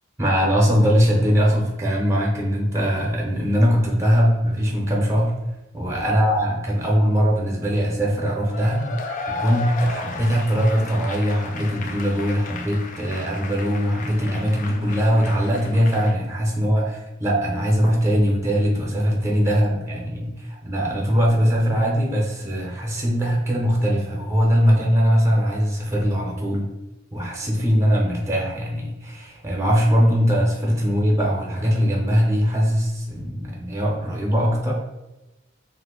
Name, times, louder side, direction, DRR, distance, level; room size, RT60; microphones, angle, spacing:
voice 1, 0.2-5.3 5.7-8.9 9.3-26.7 27.1-34.7, equal, 15° right, -2 dB, 0.6 m, -21 dB
Cheering / Applause / Crowd, 8.5-16.2, left 3 dB, 40° left, 0.3 m, -34 dB
2.6 x 2.5 x 3.7 m, 1.0 s
head